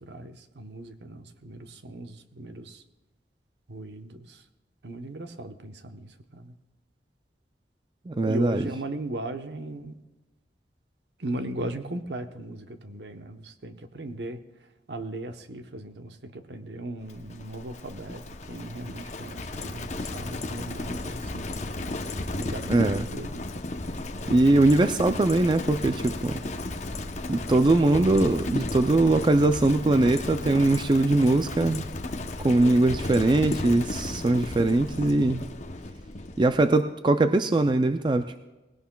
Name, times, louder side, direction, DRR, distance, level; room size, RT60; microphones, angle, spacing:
voice 1, 0.0-2.8 3.7-4.4 4.8-6.5 8.3-9.9 11.2-14.4 14.9-22.8 23.1-23.4, right 1 dB, 70° right, 7 dB, 1.0 m, -38 dB
voice 2, 8.1-8.6 22.7-23.0 24.3-26.4 27.3-31.9 32.4-35.4 36.4-38.5, right 2 dB, 25° right, 9 dB, 0.4 m, -21 dB
Livestock farm animals working animals, 17.1-36.7, left 2 dB, 40° left, 0.8 m, -34 dB
20.0 x 17.0 x 2.3 m, 1.1 s
head